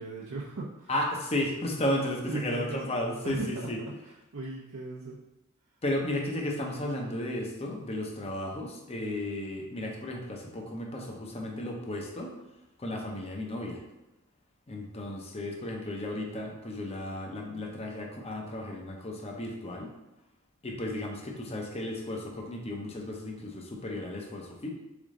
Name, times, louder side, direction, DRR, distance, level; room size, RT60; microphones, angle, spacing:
voice 1, 0.0-0.9 2.3-2.9 3.2-3.5 3.8-5.2, right 3 dB, 70° right, -4 dB, 0.6 m, -38 dB
voice 2, 0.9-3.8 5.8-12.3 12.8-13.8 14.7-19.9 20.6-24.7, left 1 dB, 30° left, 0 dB, 0.7 m, -34 dB
3.8 x 3.5 x 3.7 m, 0.97 s
head